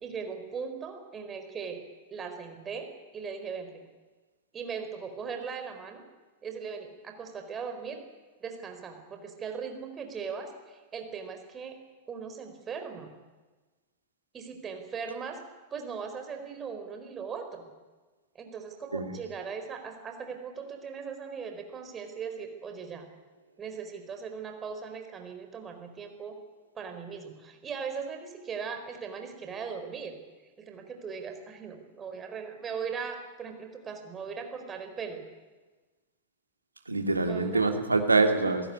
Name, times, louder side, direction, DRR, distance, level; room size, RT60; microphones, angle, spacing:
voice 1, 0.0-1.8 2.1-3.8 4.5-6.0 6.4-8.0 8.4-11.8 12.1-13.2 14.3-15.4 15.7-17.7 18.3-23.1 23.6-26.3 26.7-30.2 30.6-35.2 37.2-37.7, right 6 dB, 20° right, 5 dB, 4.6 m, -39 dB
voice 2, 36.9-38.7, right 3 dB, 80° right, 5 dB, 2.5 m, -25 dB
28.0 x 16.0 x 9.7 m, 1.3 s
figure-of-eight pair, 90°, 0 cm